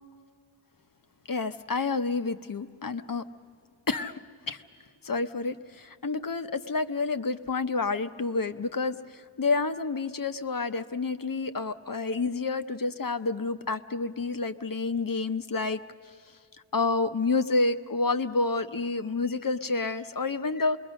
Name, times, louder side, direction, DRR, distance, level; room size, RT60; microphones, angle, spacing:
voice 1, 1.3-3.2 3.9-4.2 4.5-4.6 5.0-15.8 16.7-20.8, left 3 dB, 45° left, 10 dB, 0.8 m, -29 dB
27.5 x 21.5 x 6.4 m, 2.2 s
wide cardioid pair, 85°, 48 cm